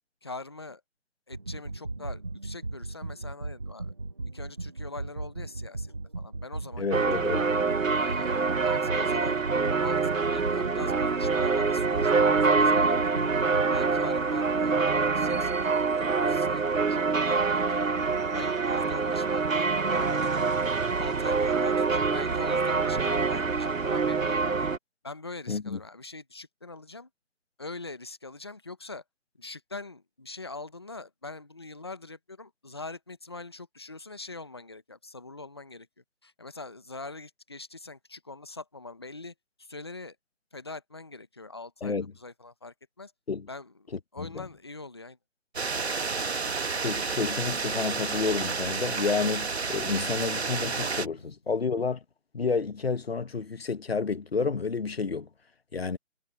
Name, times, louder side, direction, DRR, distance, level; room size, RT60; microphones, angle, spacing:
voice 1, 0.2-0.8 1.3-3.9 4.3-7.2 7.9-9.4 9.8-13.3 13.7-17.9 18.3-20.6 21.0-24.7 25.0-27.1 27.6-29.0 29.4-35.9 36.2-40.2 40.5-43.1 43.5-45.2 51.2-51.3, left 3 dB, 20° left, 0.9 m, -43 dB
sound 1, 1.3-13.9, right 2 dB, 20° right, 1.0 m, -37 dB
voice 2, 6.8-7.5 25.5-25.8 41.8-42.1 43.3-43.5 44.2-44.5 46.8-52.0 52.3-55.3 55.7-56.0, left 5 dB, 50° left, 1.4 m, -30 dB
sound 2, 6.9-24.8, right 4 dB, 75° right, 1.3 m, -25 dB
sound 3, 45.6-51.1, right 4 dB, 55° right, 1.6 m, -30 dB
figure-of-eight pair, 165°, 40 cm